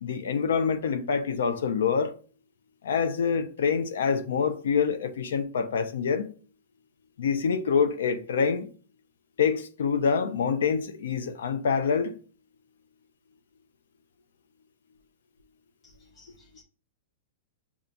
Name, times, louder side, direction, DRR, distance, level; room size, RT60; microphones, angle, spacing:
voice 1, 0.0-2.1 2.8-6.3 7.2-8.7 9.4-12.2, left 6 dB, 85° left, 0.5 m, -26 dB
voice 2, 15.8-16.6, left 2 dB, 20° left, 0.8 m, -58 dB
6.7 x 2.4 x 2.6 m
supercardioid pair, 165°, 0 cm